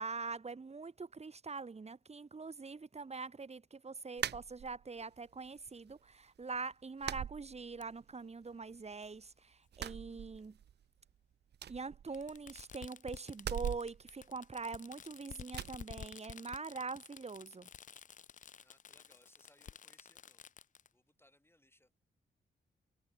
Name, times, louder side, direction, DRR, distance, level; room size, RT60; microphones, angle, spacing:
voice 1, 0.0-10.6 11.7-17.7, right 4 dB, 35° right, 1.2 m, -44 dB
sound 1, 4.2-5.1 5.5-6.2 6.4-6.6 7.0-8.1 8.4-9.3 9.7-10.8 11.1-11.2 11.5-12.7 13.4-15.0 15.5-15.8, right 9 dB, 60° right, 0.6 m, -43 dB
Fireworks, 7.8-7.9 9.0-9.1 10.4-10.5 12.1-20.9, left 8 dB, 40° left, 0.5 m, -52 dB
voice 2, 18.6-20.5 20.9-22.0, left 1 dB, 10° left, 6.9 m, -68 dB
supercardioid pair, 50°, 20 cm